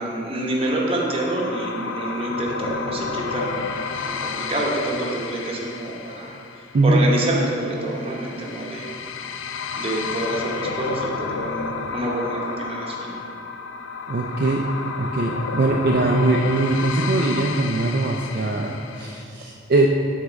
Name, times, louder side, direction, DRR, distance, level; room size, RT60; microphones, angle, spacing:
voice 1, 0.0-3.6 4.0-6.4 6.8-9.0 9.7-13.1, right 1 dB, 30° right, -2 dB, 0.9 m, -27 dB
sound 1, 0.6-19.2, left 5 dB, 80° left, 0.4 m, -31 dB
voice 2, 14.1-14.7 15.0-19.9, right 2 dB, 50° right, 0 dB, 0.4 m, -21 dB
8.1 x 3.6 x 5.1 m, 2.7 s
head